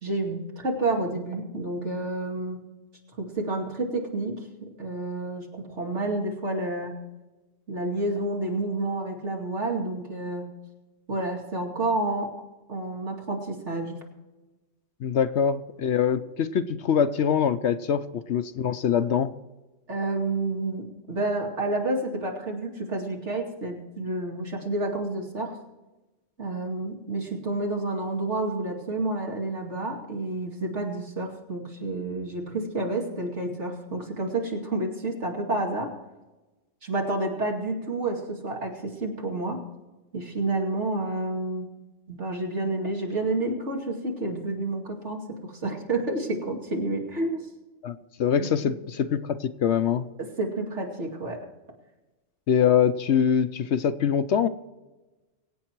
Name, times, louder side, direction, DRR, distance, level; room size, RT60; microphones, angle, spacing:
voice 1, 0.0-2.6 3.2-7.0 7.7-10.5 11.1-12.4 12.7-14.0 19.9-25.6 26.4-35.9 36.8-39.6 40.1-41.7 42.1-47.5 48.4-48.5 50.2-51.4, right 2 dB, 65° right, 0 dB, 2.8 m, -29 dB
voice 2, 15.0-19.3 47.8-50.1 52.5-54.5, left 8 dB, 65° left, 11 dB, 0.9 m, -24 dB
23.5 x 8.7 x 4.6 m, 1.1 s
omnidirectional pair, 1.3 m